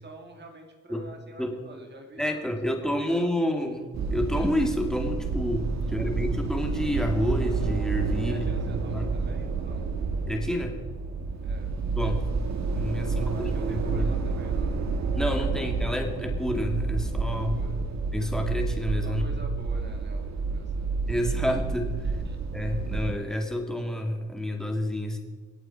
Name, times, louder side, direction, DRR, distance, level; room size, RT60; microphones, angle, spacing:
voice 1, 0.0-3.2 5.8-6.2 8.3-9.9 11.4-11.7 13.2-14.8 15.2-15.7 17.3-17.8 19.0-21.0 22.2-22.4, right 2 dB, 35° right, 4 dB, 2.2 m, -47 dB
voice 2, 2.2-8.5 8.9-9.1 10.3-10.8 12.0-12.3 12.7-14.1 15.1-17.6 18.1-19.2 21.1-22.2 22.5-25.2, left 1 dB, ahead, 3 dB, 2.4 m, -29 dB
sound 1, 3.9-23.1, right 4 dB, 65° right, 1.6 m, -29 dB
sound 2, 4.9-18.5, left 5 dB, 70° left, 2.0 m, -50 dB
23.5 x 8.6 x 4.6 m, 1.3 s
cardioid pair, 90°, 30 cm